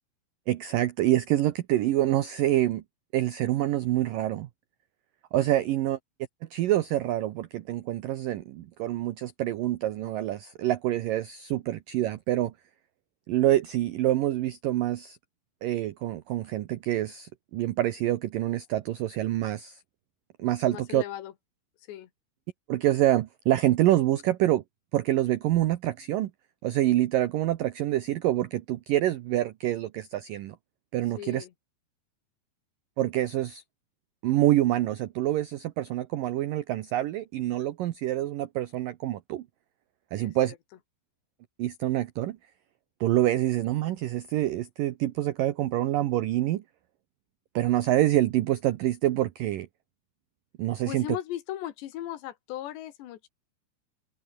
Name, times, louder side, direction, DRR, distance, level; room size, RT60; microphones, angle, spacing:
voice 1, 0.5-2.8 3.1-4.5 5.3-6.0 6.5-12.5 13.3-15.2 15.6-19.8 20.4-21.0 22.7-24.6 24.9-26.3 26.6-30.6 30.9-31.5 33.0-33.6 34.2-39.5 40.1-40.5 41.6-42.4 43.0-46.6 47.6-49.7 50.6-51.1, right 14 dB, 85° right, 1.9 m, -26 dB
voice 2, 20.7-21.3 21.9-22.1 31.2-31.5 40.2-40.6 50.9-53.3, left 13 dB, 70° left, 3.6 m, -37 dB
omnidirectional pair, 5.4 m